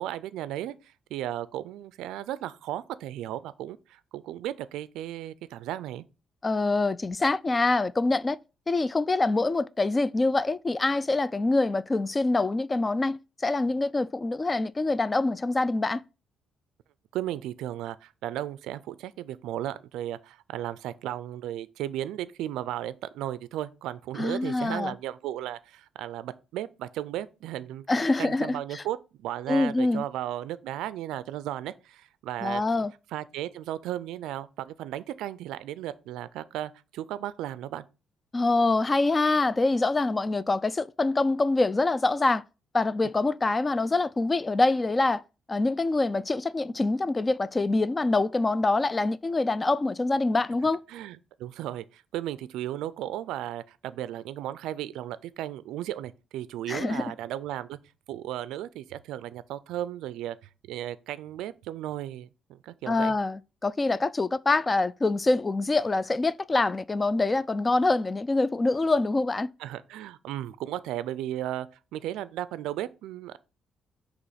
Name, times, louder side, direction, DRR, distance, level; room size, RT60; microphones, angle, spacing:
voice 1, 0.0-6.0 17.1-27.9 28.2-32.6 33.1-37.8 50.9-57.8 58.1-60.4 60.7-63.1 69.6-71.7 71.9-73.4, right 12 dB, 90° right, 0.3 m, -35 dB
voice 2, 6.4-8.4 8.7-16.0 24.2-24.9 27.9-28.8 29.5-30.0 32.4-32.9 38.3-42.4 42.7-45.2 45.5-50.8 56.7-57.0 62.9-69.5, left 2 dB, 25° left, 0.3 m, -25 dB
6.1 x 2.9 x 5.6 m
cardioid pair, 90°, 0 cm